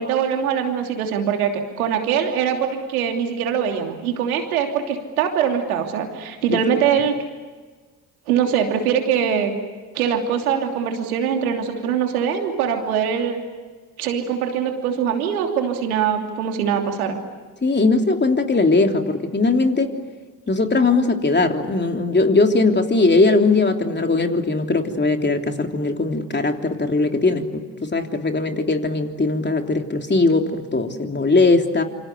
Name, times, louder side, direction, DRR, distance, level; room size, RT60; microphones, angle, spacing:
voice 1, 0.0-7.1 8.3-9.5 9.9-13.4 14.0-17.2, right 8 dB, 85° right, 4 dB, 3.0 m, -22 dB
voice 2, 17.6-19.9 20.5-31.8, left 3 dB, 25° left, 4 dB, 3.3 m, -19 dB
27.5 x 26.0 x 8.3 m, 1.4 s
hypercardioid pair, 50°, 42 cm